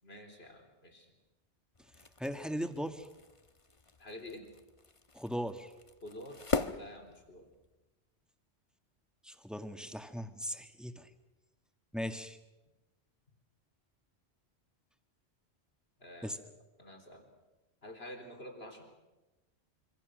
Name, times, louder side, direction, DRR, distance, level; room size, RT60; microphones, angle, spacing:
voice 1, 0.0-1.1 4.0-4.5 6.0-6.4 6.8-7.5 16.0-16.3 16.8-17.3 17.8-18.9, left 1 dB, 65° left, 4 dB, 4.3 m, -48 dB
sound 1, 1.7-7.7, left 4 dB, 30° left, 1.2 m, -41 dB
voice 2, 2.2-3.1 5.1-5.7 9.2-11.1 11.9-12.4 16.2-16.4, equal, ahead, 6 dB, 1.7 m, -38 dB
26.5 x 25.5 x 6.4 m, 1.1 s
omnidirectional pair, 1.1 m